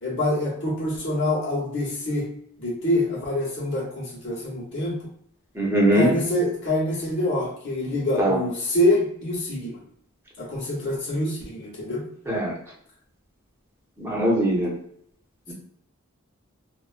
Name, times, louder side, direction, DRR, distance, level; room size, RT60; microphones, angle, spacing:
voice 1, 0.0-2.3 2.6-5.0 5.9-9.8 10.4-12.0, left 1 dB, 55° left, -5 dB, 1.1 m, -26 dB
voice 2, 5.6-6.1 8.2-8.4 12.3-12.5 14.0-14.7 15.5-15.6, right 1 dB, 10° right, -4 dB, 0.7 m, -21 dB
2.5 x 2.2 x 2.4 m, 0.68 s
head